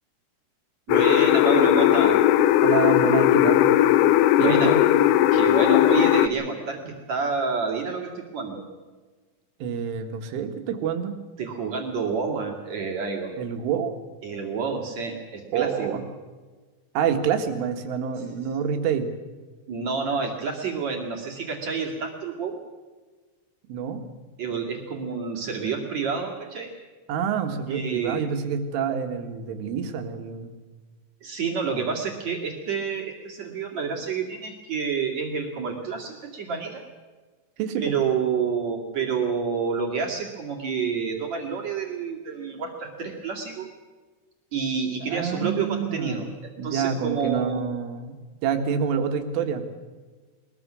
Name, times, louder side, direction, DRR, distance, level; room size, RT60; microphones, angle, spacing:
sound 1, 0.9-6.3, left 12 dB, 85° left, 2.2 m, -18 dB
voice 1, 0.9-2.2 4.4-4.8 5.3-8.7 11.4-13.3 14.2-16.0 19.7-22.6 24.4-26.7 27.7-28.2 31.2-36.8 37.8-43.7 44.5-46.3 46.6-47.7, right 5 dB, 45° right, 0 dB, 3.0 m, -29 dB
voice 2, 2.6-3.7 4.4-4.8 6.9-7.0 9.6-11.2 13.3-13.9 15.5-16.0 17.0-19.1 23.7-24.0 27.1-30.5 31.7-31.9 37.6-38.0 45.1-46.3 46.6-48.2 48.4-49.7, right 7 dB, 90° right, 6 dB, 4.3 m, -27 dB
22.0 x 21.5 x 6.3 m, 1.4 s
omnidirectional pair, 5.5 m